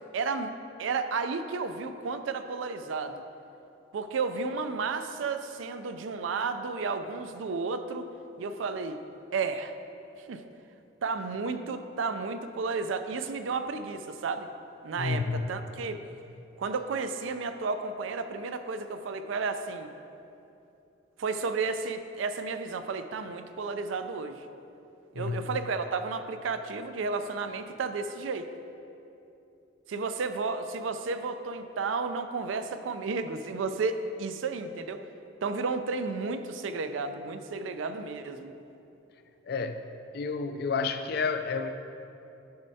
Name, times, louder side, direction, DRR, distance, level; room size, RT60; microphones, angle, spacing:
voice 1, 0.1-3.2 3.9-8.1 8.4-9.0 9.3-9.7 10.3-10.4 11.0-14.5 14.8-16.0 16.6-19.9 21.2-24.5 25.2-28.5 29.9-35.0 35.4-38.5, right 4 dB, 85° right, 9 dB, 0.4 m, -32 dB
voice 2, 15.0-15.5 25.1-25.6 39.4-39.9 40.1-41.7, left 4 dB, 55° left, 8 dB, 0.3 m, -30 dB
10.5 x 5.4 x 2.7 m, 2.8 s
head